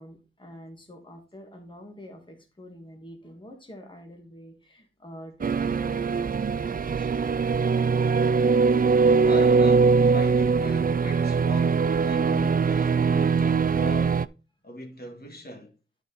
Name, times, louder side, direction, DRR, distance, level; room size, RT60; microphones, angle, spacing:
voice 1, 0.0-7.2, equal, 25° left, 1.9 m, -46 dB
sound 1, 5.4-14.3, right 5 dB, 45° right, 0.4 m, -22 dB
voice 2, 9.2-14.2 14.6-15.7, equal, 50° left, 1.9 m, -41 dB
11.0 x 5.0 x 4.1 m
wide cardioid pair, 80°, 20 cm